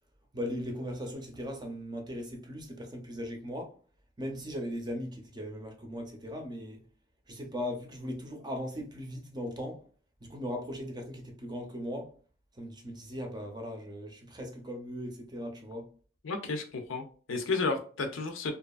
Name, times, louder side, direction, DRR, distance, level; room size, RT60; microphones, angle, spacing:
voice 1, 0.3-3.8 4.2-6.8 7.3-9.9 10.2-12.1 12.5-15.9, equal, 20° right, 0.6 m, -38 dB
voice 2, 16.2-18.5, left 3 dB, 75° left, 0.5 m, -32 dB
2.7 x 2.3 x 2.3 m
head